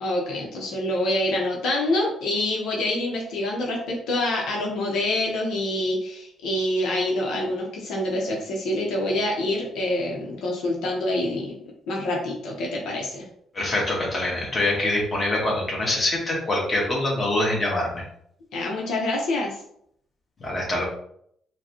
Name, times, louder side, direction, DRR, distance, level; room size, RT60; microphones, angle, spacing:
voice 1, 0.0-11.6 11.9-13.2 18.5-19.5, left 1 dB, 85° left, -2 dB, 0.9 m, -26 dB
voice 2, 13.5-18.0 20.4-20.8, left 1 dB, 30° left, -3 dB, 1.5 m, -24 dB
4.7 x 2.3 x 2.9 m, 0.69 s
cardioid pair, 90°, 0 cm